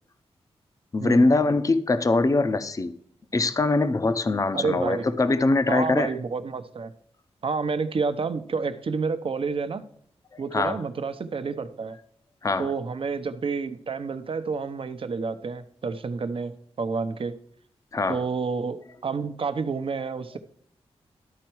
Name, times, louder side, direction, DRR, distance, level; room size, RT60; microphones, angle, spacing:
voice 1, 0.9-3.0 3.3-6.1 10.3-10.8 12.4-12.7 17.9-18.3, left 3 dB, 30° left, 0.6 m, -23 dB
voice 2, 4.5-5.1 5.7-6.9 7.4-9.8 10.4-12.0 12.6-17.4 18.1-20.4, right 4 dB, 55° right, 0.8 m, -29 dB
12.0 x 4.5 x 4.6 m
cardioid pair, 80°, 11 cm